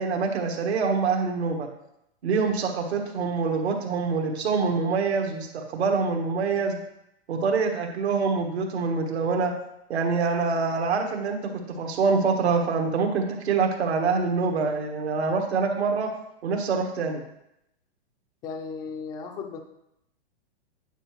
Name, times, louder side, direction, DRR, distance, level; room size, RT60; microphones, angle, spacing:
voice 1, 0.0-1.7 2.2-6.8 7.3-9.5 9.9-11.4 11.7-16.1 16.4-17.2, right 4 dB, 85° right, 2 dB, 1.3 m, -25 dB
voice 2, 18.4-19.6, left 5 dB, 10° left, 5 dB, 0.3 m, -35 dB
8.9 x 4.7 x 3.1 m, 0.81 s
hypercardioid pair, 140°, 32 cm